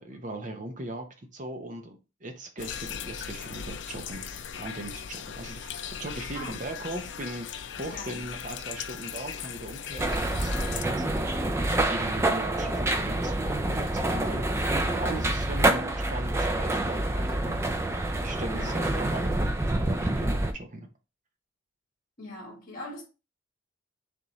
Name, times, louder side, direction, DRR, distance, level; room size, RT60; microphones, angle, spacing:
voice 1, 0.0-4.3 4.6-17.6 18.2-20.9, right 2 dB, 40° right, 0.7 m, -39 dB
sound 1, 2.6-10.8, left 7 dB, 65° left, 0.4 m, -38 dB
voice 2, 7.9-8.2 18.5-18.8 22.2-23.0, left 1 dB, 45° left, 1.3 m, -41 dB
sound 2, 10.0-20.5, right 1 dB, 15° right, 0.3 m, -27 dB
3.9 x 3.5 x 3.0 m
head